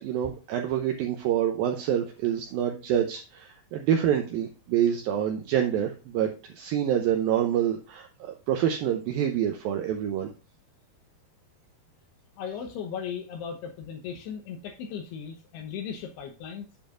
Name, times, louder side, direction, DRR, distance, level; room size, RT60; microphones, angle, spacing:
voice 1, 0.0-10.3, right 10 dB, 75° right, 4 dB, 2.3 m, -27 dB
voice 2, 12.4-16.7, left 7 dB, 75° left, 3 dB, 3.0 m, -37 dB
8.9 x 7.5 x 2.5 m, 0.33 s
omnidirectional pair, 4.9 m